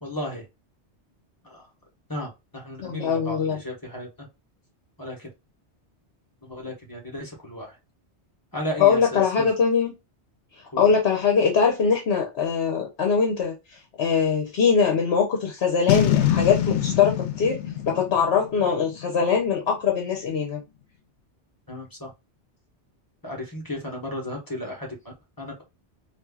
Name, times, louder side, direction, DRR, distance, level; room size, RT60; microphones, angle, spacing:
voice 1, 0.0-0.4 1.5-1.6 2.1-4.1 5.0-5.3 6.4-7.7 8.5-9.5 10.7-10.8 21.7-22.1 23.2-25.6, left 1 dB, 20° left, 1.4 m, -34 dB
voice 2, 2.8-3.6 8.8-9.9 10.8-17.6 17.9-20.6, left 6 dB, 70° left, 1.1 m, -22 dB
Boom, 15.9-19.2, left 11 dB, 90° left, 0.9 m, -25 dB
4.3 x 2.6 x 2.3 m
omnidirectional pair, 1.2 m